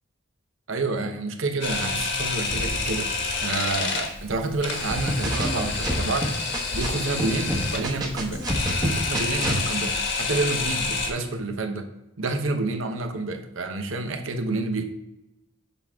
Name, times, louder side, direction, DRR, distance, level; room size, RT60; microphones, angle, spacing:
voice 1, 0.7-3.1 3.4-6.3 6.7-8.4 8.8-11.9 12.2-14.8, right 3 dB, 70° right, 5 dB, 0.9 m, -29 dB
Camera, 1.6-11.1, left 4 dB, 55° left, 1.4 m, -29 dB
sound 1, 4.9-6.9 7.2-9.6, right 1 dB, 20° right, 1.0 m, -27 dB
7.1 x 6.0 x 3.5 m, 0.93 s
head